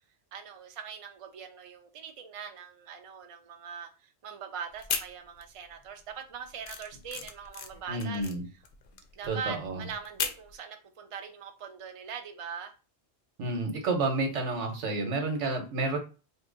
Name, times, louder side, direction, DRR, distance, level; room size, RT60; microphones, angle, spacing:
voice 1, 0.3-8.2 9.2-12.7, right 6 dB, 50° right, 0.4 m, -42 dB
sound 1, 4.7-5.7 6.0-10.5, left 6 dB, 60° left, 0.6 m, -36 dB
voice 2, 7.9-8.4 9.3-9.9 13.4-16.0, right 3 dB, 85° right, 1.2 m, -30 dB
2.8 x 2.4 x 3.8 m
omnidirectional pair, 1.2 m